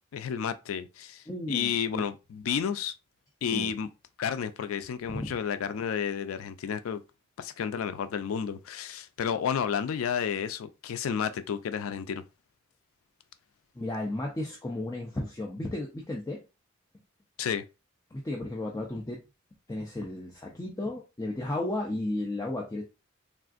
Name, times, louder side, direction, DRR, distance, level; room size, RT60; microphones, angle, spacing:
voice 1, 0.1-2.9 3.4-3.9 4.2-7.0 7.4-12.2 17.4-17.6, left 7 dB, 90° left, 0.3 m, -31 dB
voice 2, 1.3-2.0 3.5-3.7 5.1-5.4 13.7-16.4 18.1-19.2 19.7-22.8, left 1 dB, 15° left, 0.5 m, -34 dB
3.5 x 2.5 x 2.4 m
head